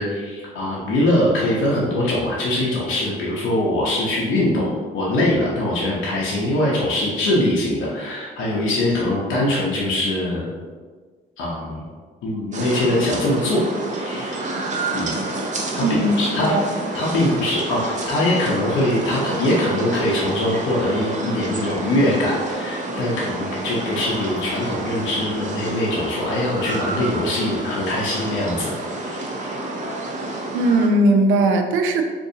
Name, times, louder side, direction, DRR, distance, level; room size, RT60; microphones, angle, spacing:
voice 1, 0.0-10.5 11.4-11.8 12.2-14.6 14.9-15.1 15.8-16.5 16.9-28.8 29.0-29.6, left 1 dB, 80° left, -5 dB, 0.8 m, -22 dB
sound 1, 12.5-30.9, right 2 dB, 40° right, 0.6 m, -29 dB
voice 2, 15.8-16.6 30.5-32.0, right 1 dB, 90° right, 5 dB, 0.4 m, -18 dB
3.8 x 2.6 x 2.7 m, 1.5 s
cardioid pair, 90°, 20 cm